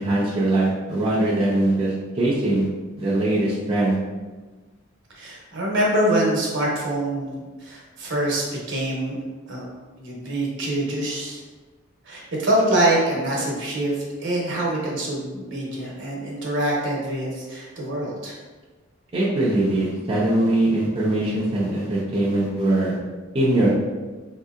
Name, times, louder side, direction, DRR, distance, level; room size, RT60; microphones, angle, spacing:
voice 1, 0.0-2.7 3.0-4.0 19.1-22.9 23.3-23.8, right 1 dB, 30° right, -7 dB, 0.5 m, -21 dB
voice 2, 5.2-9.2 9.5-9.7 10.0-11.4 12.1-18.3, right 1 dB, 65° right, -3 dB, 0.9 m, -25 dB
3.9 x 2.7 x 2.4 m, 1.3 s
head